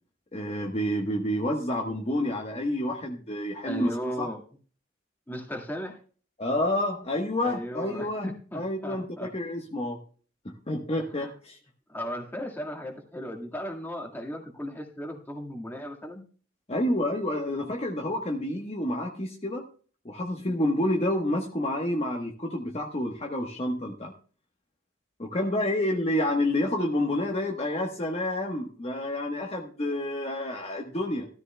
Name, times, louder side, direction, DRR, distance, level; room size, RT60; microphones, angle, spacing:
voice 1, 0.3-3.9 4.2-4.3 6.4-8.3 8.5-10.0 10.4-11.6 16.7-19.7 20.0-24.1 25.2-31.3, left 1 dB, 35° left, 1 dB, 1.2 m, -29 dB
voice 2, 3.7-4.4 5.3-6.0 7.4-9.3 11.1-11.3 11.9-16.2, equal, 10° left, 2 dB, 1.8 m, -36 dB
15.5 x 13.5 x 2.2 m, 0.41 s
head